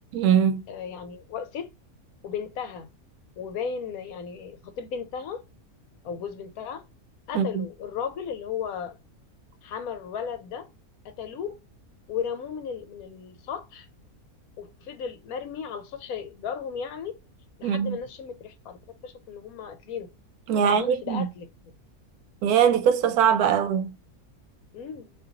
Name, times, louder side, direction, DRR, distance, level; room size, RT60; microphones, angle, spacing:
voice 1, 0.1-0.6 7.3-7.6 17.6-18.0 20.5-21.2 22.4-23.9, right 8 dB, 85° right, 1.1 m, -22 dB
voice 2, 0.7-1.7 2.2-2.9 3.4-5.4 6.0-6.9 7.3-9.0 9.6-10.7 11.0-11.6 12.1-13.9 14.6-17.1 17.6-20.1 20.5-21.8 24.7-25.1, left 7 dB, 75° left, 1.0 m, -35 dB
3.7 x 2.9 x 2.8 m
omnidirectional pair, 1.6 m